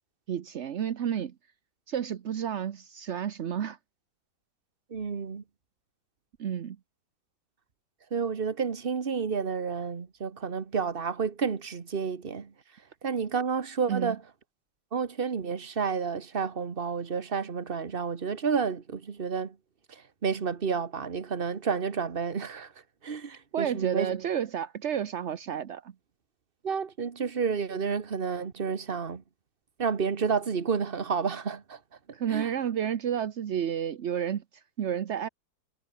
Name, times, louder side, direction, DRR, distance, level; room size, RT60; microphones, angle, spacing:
voice 1, 0.3-1.3 1.9-3.8 6.4-6.8 13.9-14.2 23.5-25.9 32.1-35.3, right 9 dB, 55° right, 0.8 m, -31 dB
voice 2, 4.9-5.4 8.1-12.5 13.0-14.2 14.9-19.5 20.2-22.7 23.0-24.2 26.6-29.2 29.8-31.8 32.3-32.5, right 6 dB, 30° right, 1.3 m, -30 dB
omnidirectional pair, 2.1 m